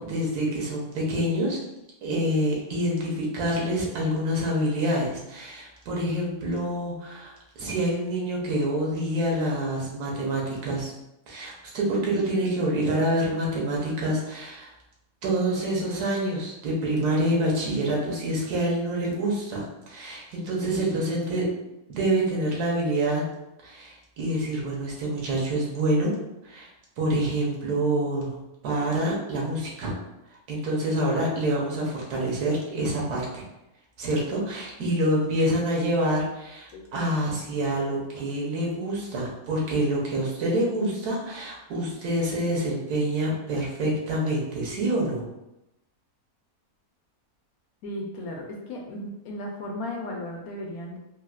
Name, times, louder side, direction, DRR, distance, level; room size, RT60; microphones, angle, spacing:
voice 1, 0.0-1.6 2.0-10.9 11.3-14.7 15.2-21.5 21.9-23.3 23.6-26.1 26.4-26.7 27.0-28.4 28.6-29.9 30.5-33.4 34.0-45.2, right 1 dB, 90° right, -3 dB, 1.4 m, -27 dB
voice 2, 36.7-37.1 47.8-51.0, left 1 dB, 75° left, 0 dB, 1.1 m, -35 dB
4.1 x 2.0 x 2.3 m, 0.91 s
omnidirectional pair, 1.6 m